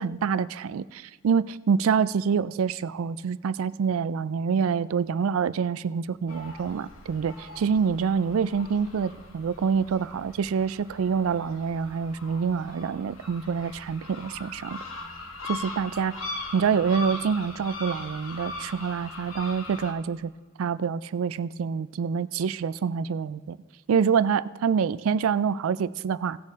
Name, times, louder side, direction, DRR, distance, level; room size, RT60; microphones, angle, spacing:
voice 1, 0.0-14.8 15.4-16.1 16.5-20.3 20.6-23.6 23.9-26.4, right 6 dB, 80° right, 17 dB, 0.4 m, -26 dB
sound 1, 6.3-19.9, left 2 dB, 75° left, 1.4 m, -40 dB
17.0 x 6.7 x 3.6 m, 1.4 s
head